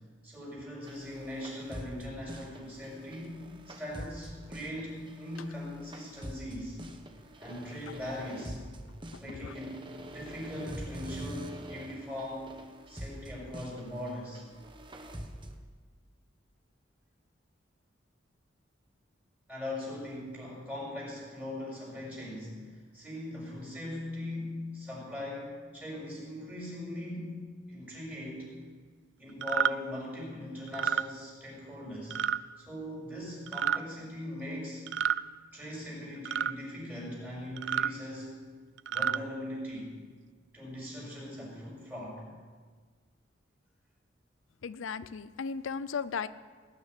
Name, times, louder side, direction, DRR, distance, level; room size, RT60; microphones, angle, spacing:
voice 1, 0.2-6.8 7.4-8.6 9.2-9.8 10.1-12.5 12.9-14.4 19.5-28.5 29.2-32.2 32.6-34.9 35.5-38.3 38.9-39.9 40.5-42.2, left 1 dB, 10° right, -4 dB, 6.3 m, -40 dB
sound 1, 0.8-15.6, right 1 dB, 25° right, 1.1 m, -45 dB
sound 2, 29.4-29.7 30.7-31.0 32.1-32.4 33.5-33.8 34.9-35.2 36.2-36.5 37.6-37.9 38.8-39.2, right 9 dB, 60° right, 0.3 m, -29 dB
voice 2, 44.6-46.3, left 5 dB, 90° left, 15 dB, 0.5 m, -35 dB
18.5 x 6.7 x 9.9 m, 1.5 s
head